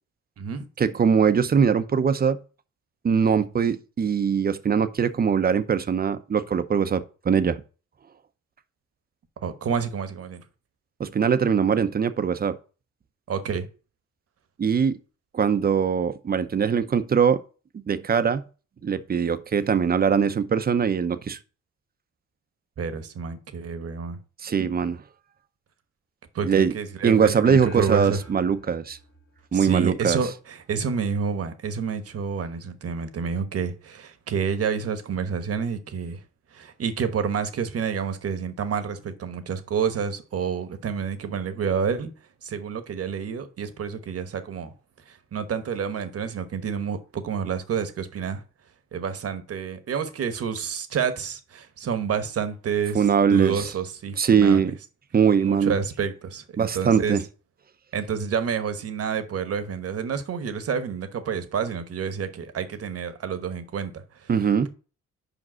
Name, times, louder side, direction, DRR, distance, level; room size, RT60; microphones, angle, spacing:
voice 1, 0.8-2.4 3.0-7.6 11.0-12.6 14.6-15.0 15.3-17.4 17.7-18.4 18.8-21.4 24.4-25.0 26.4-26.7 27.0-29.0 29.5-30.2 52.9-53.7 54.2-54.7 55.1-55.8 56.6-57.2 64.3-64.7, right 6 dB, 30° right, 0.7 m, -21 dB
voice 2, 9.4-10.4 13.3-13.7 22.8-24.2 26.3-28.2 29.5-36.2 36.5-42.1 42.4-44.7 45.1-48.4 48.9-54.7 55.3-57.2 57.9-64.3, right 6 dB, 50° right, 1.1 m, -29 dB
sound 1, 27.5-30.1, left 1 dB, 35° left, 1.4 m, -46 dB
5.2 x 5.1 x 6.2 m
cardioid pair, 90°, 30 cm